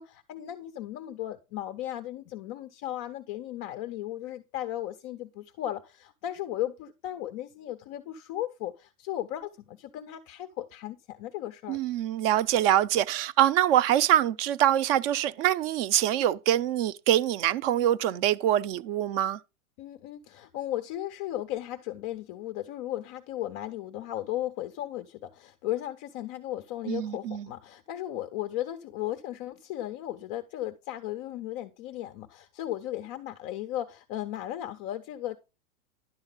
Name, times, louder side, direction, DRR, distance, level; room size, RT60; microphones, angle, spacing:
voice 1, 0.0-11.8 19.8-35.4, left 13 dB, 25° left, 0.4 m, -36 dB
voice 2, 11.7-19.4 26.9-27.5, right 11 dB, 45° right, 0.6 m, -24 dB
11.0 x 6.4 x 3.8 m
hypercardioid pair, 125°, 42 cm